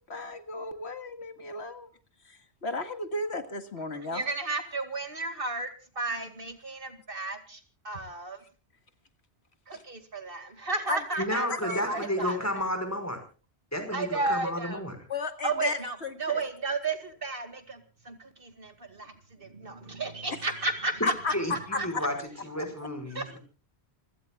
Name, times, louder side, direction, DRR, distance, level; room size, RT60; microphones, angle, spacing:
voice 1, 0.1-1.9 2.2-4.2 9.7-9.8 10.9-11.0 11.5-12.3 15.1-16.4 20.3-20.4 21.0-21.3 21.7-22.0, left 3 dB, 80° left, 8 dB, 2.1 m, -34 dB
voice 2, 4.0-8.4 9.7-12.7 13.9-14.8 15.4-21.1 21.8-21.9 23.1-23.4, right 3 dB, 55° right, 8 dB, 2.4 m, -33 dB
voice 3, 11.2-13.2 13.7-15.0 21.3-22.1 22.4-23.4, equal, 15° left, 7 dB, 5.3 m, -32 dB
27.5 x 17.0 x 2.4 m, 0.37 s
omnidirectional pair, 1.1 m